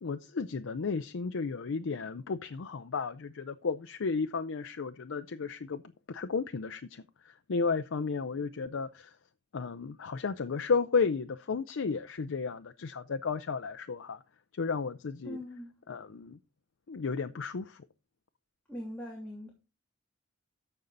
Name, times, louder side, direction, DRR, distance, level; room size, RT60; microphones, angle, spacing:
voice 1, 0.0-5.8 6.1-9.1 9.5-14.2 14.5-15.4 15.9-16.4 16.9-17.9, left 5 dB, 90° left, 0.5 m, -33 dB
voice 2, 15.2-15.7 18.7-19.5, equal, 5° left, 3.0 m, -41 dB
14.0 x 5.5 x 3.9 m
head